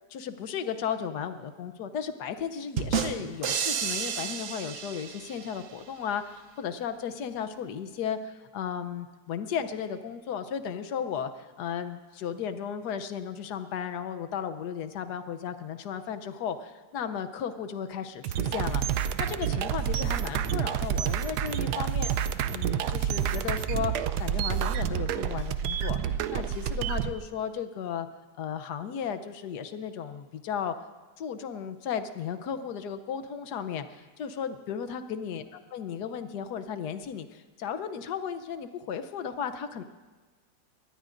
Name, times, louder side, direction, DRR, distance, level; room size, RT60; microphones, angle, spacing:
voice 1, 0.1-22.1 22.5-28.1 28.4-30.7 31.2-39.8, left 7 dB, 85° left, 10 dB, 1.4 m, -35 dB
sound 1, 2.8-5.6, right 7 dB, 60° right, 1.1 m, -31 dB
sound 2, 18.2-27.1, right 9 dB, 90° right, 1.2 m, -29 dB
22.5 x 18.5 x 2.6 m, 1.3 s
omnidirectional pair, 1.7 m